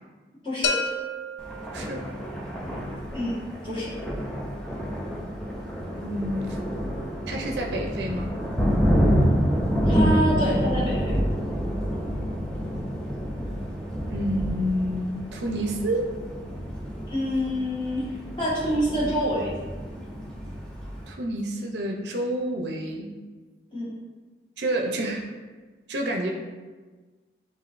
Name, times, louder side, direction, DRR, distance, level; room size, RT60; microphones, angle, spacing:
voice 1, 0.4-0.8 3.1-3.4 3.6-3.9 9.8-11.2 17.1-18.0 18.4-19.6 23.7-23.9, equal, 30° left, -8 dB, 1.4 m, -26 dB
sound 1, 0.6-2.5, left 3 dB, 90° left, 0.4 m, -30 dB
Thunder, 1.4-21.1, equal, 5° left, 0.4 m, -28 dB
voice 2, 1.7-2.1 6.0-6.6 7.3-8.3 14.1-16.1 21.1-23.1 24.6-25.2 25.9-26.3, right 1 dB, 70° right, 1 dB, 0.5 m, -29 dB
6.9 x 2.6 x 2.5 m, 1.4 s
head